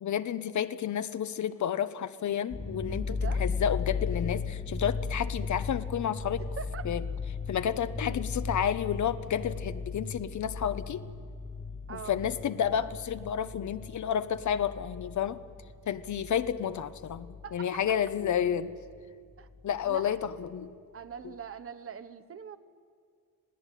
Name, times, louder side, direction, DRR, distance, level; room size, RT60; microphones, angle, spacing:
voice 1, 0.0-6.4 6.8-7.0 7.5-11.0 11.9-15.4 15.9-18.7 19.6-20.7 21.2-21.3, left 9 dB, 65° left, 13 dB, 0.9 m, -31 dB
sound 1, 2.5-17.6 17.9-19.0 19.3-19.4 19.8-20.4, left 4 dB, 25° left, 1.6 m, -36 dB
voice 2, 3.1-3.5 6.6-6.9 11.9-12.2 17.4-17.9 19.4-19.5 19.8-20.3 20.9-22.6, right 6 dB, 45° right, 11 dB, 1.1 m, -42 dB
26.5 x 17.5 x 9.1 m, 2.2 s
wide cardioid pair, 140°, 32 cm